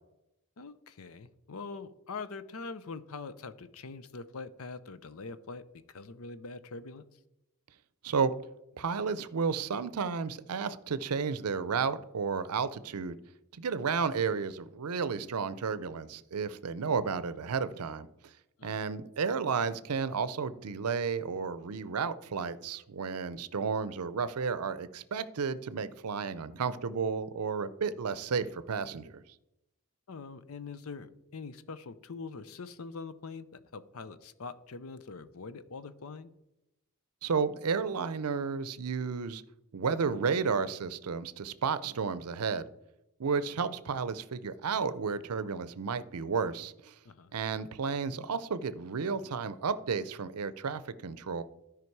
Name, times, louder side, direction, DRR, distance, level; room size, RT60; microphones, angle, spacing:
voice 1, 0.6-7.2 18.6-18.8 30.1-36.3 47.0-47.3, left 4 dB, 70° left, 14 dB, 0.6 m, -43 dB
voice 2, 8.8-13.2 13.5-18.1 18.6-29.2 37.2-39.4 39.7-42.6 43.2-46.9 47.3-51.4, right 5 dB, 90° right, 15 dB, 0.6 m, -32 dB
12.5 x 5.0 x 4.6 m, 0.89 s
head